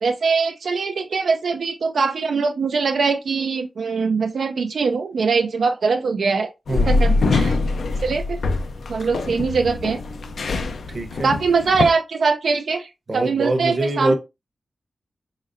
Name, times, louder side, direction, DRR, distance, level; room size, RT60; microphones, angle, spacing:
voice 1, 0.0-7.6 8.0-8.4 8.9-10.0 11.2-14.1, right 4 dB, 75° right, 0.4 m, -22 dB
sound 1, 6.7-11.9, left 3 dB, 80° left, 0.5 m, -23 dB
voice 2, 6.7-7.1 10.9-11.4 13.1-14.1, right 2 dB, 35° right, 0.8 m, -24 dB
4.0 x 3.8 x 2.5 m
wide cardioid pair, 150°, 0 cm